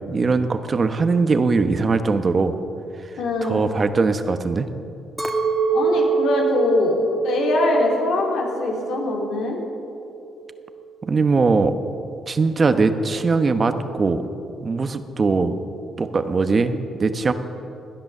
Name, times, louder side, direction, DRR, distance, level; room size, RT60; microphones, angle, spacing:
voice 1, 0.1-2.6 3.4-4.7 11.0-11.7 12.3-14.3 14.6-15.6 16.0-17.3, right 4 dB, 35° right, 9 dB, 1.0 m, -20 dB
voice 2, 3.2-3.6 5.7-7.0 7.2-9.6, left 2 dB, 80° left, -1 dB, 2.9 m, -22 dB
Chink clink, 5.2-9.6 9.8-10.6, right 5 dB, 5° right, 1.3 m, -25 dB
17.0 x 10.0 x 6.7 m, 2.6 s
cardioid pair, 90°, 0 cm